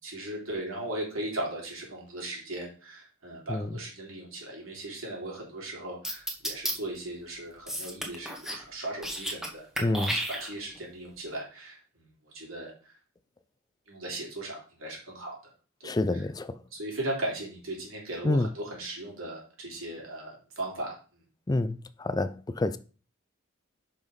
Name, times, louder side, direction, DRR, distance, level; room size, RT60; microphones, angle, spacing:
voice 1, 0.0-12.1 12.3-12.7 13.9-15.3 16.1-16.2 16.7-21.2, right 1 dB, 90° right, 3.2 m, -37 dB
sound 1, 6.0-6.7 7.7-8.6 8.9-9.5 9.8-10.8, equal, ahead, 1.1 m, -32 dB
voice 2, 9.8-10.2 15.8-16.6 18.2-18.5 21.5-22.8, left 2 dB, 20° left, 0.4 m, -28 dB
5.9 x 5.3 x 5.3 m
head